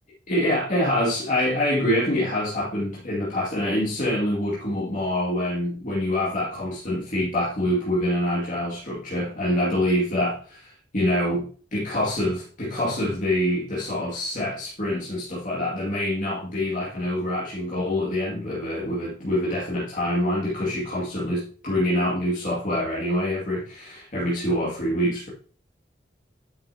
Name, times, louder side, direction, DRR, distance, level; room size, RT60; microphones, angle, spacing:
voice 1, 0.3-25.3, left 1 dB, 40° left, -7 dB, 2.3 m, -25 dB
9.5 x 6.9 x 2.8 m, 0.42 s
head